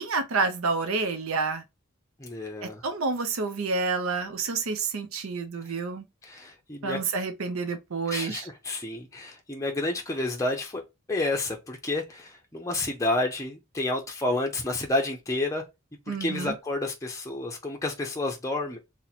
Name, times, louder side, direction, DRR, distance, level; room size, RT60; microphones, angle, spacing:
voice 1, 0.0-1.6 2.6-6.1 6.8-8.5 16.1-16.5, right 4 dB, 90° right, 0.6 m, -29 dB
voice 2, 2.2-2.8 6.2-7.0 8.1-10.8 11.1-15.6 16.1-18.8, left 2 dB, 15° left, 0.5 m, -30 dB
2.8 x 2.1 x 3.9 m
head